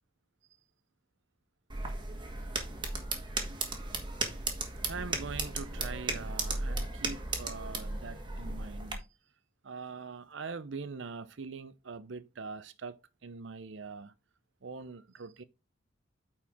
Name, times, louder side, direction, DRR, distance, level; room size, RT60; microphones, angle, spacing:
sound 1, 1.7-8.9, right 3 dB, 25° right, 1.4 m, -36 dB
voice 1, 4.8-9.1 9.6-14.1 14.6-15.4, right 4 dB, 70° right, 0.6 m, -43 dB
8.9 x 4.4 x 3.6 m
head